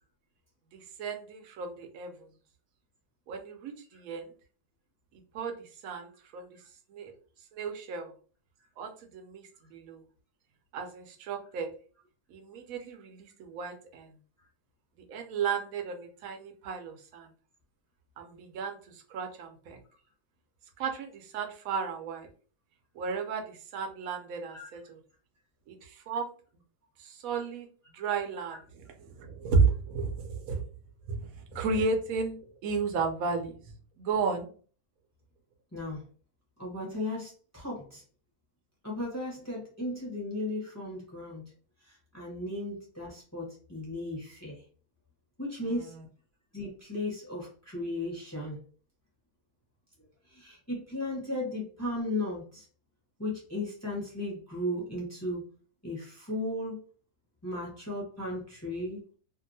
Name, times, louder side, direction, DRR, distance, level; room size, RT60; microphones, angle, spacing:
voice 1, 0.7-2.3 3.3-4.3 5.3-6.5 6.9-7.1 7.5-8.1 8.8-10.0 10.7-11.7 12.3-14.1 15.1-17.3 18.2-19.8 20.8-22.3 22.9-25.0 25.7-26.3 27.0-27.7 27.9-28.6 29.1-30.6 31.1-32.4 32.6-33.6 34.0-34.5 45.7-46.0, right 4 dB, 65° right, 3 dB, 1.0 m, -33 dB
voice 2, 36.6-38.0 38.8-41.4 41.8-44.6 45.4-45.9 46.5-48.6 50.3-52.7 53.2-55.4 55.8-56.8 57.4-59.0, left 1 dB, 10° left, -3 dB, 0.8 m, -35 dB
2.7 x 2.5 x 2.6 m, 0.41 s
omnidirectional pair, 1.7 m